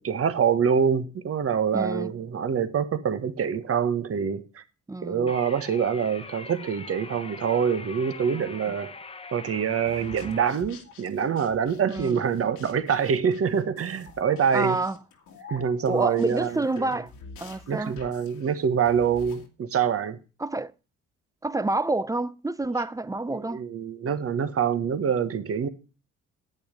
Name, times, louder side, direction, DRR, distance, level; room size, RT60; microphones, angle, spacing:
voice 1, 0.0-4.6 5.0-8.9 9.3-14.8 15.5-16.9 17.7-20.2 23.3-25.7, right 7 dB, 50° right, 1.4 m, -25 dB
voice 2, 1.7-2.1 4.9-5.3 11.9-12.2 14.5-15.0 15.9-17.1 17.4-18.0 20.4-20.7 21.4-23.6, right 2 dB, 10° right, 0.6 m, -28 dB
sound 1, 5.3-10.5, left 4 dB, 20° left, 0.8 m, -42 dB
sound 2, 9.9-19.5, left 4 dB, 90° left, 2.4 m, -48 dB
10.5 x 9.0 x 5.2 m
cardioid pair, 90°, 30 cm